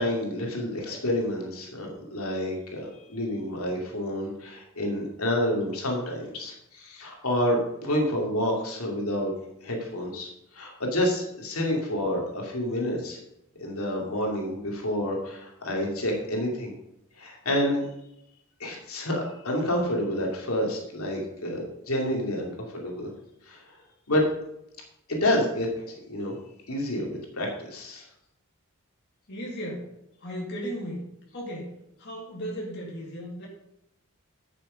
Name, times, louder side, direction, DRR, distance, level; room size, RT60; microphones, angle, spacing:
voice 1, 0.0-9.3 9.6-13.2 13.6-16.7 17.2-17.8 18.6-23.1 23.5-23.6 24.1-24.2 25.1-26.3 26.7-28.1, left 1 dB, 80° left, 0 dB, 2.5 m, -29 dB
voice 2, 29.3-29.9 30.2-31.0 31.3-33.5, equal, 50° left, -2 dB, 2.3 m, -36 dB
10.5 x 6.8 x 5.1 m, 0.81 s
head